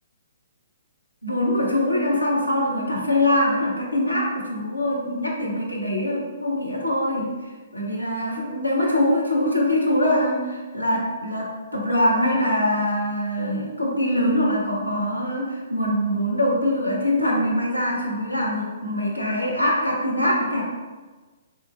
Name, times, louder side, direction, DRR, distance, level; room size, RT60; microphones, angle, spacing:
voice 1, 1.2-7.3 7.7-20.6, left 1 dB, 90° left, -3 dB, 0.8 m, -23 dB
3.4 x 3.0 x 2.4 m, 1.3 s
figure-of-eight pair, 125°, 0 cm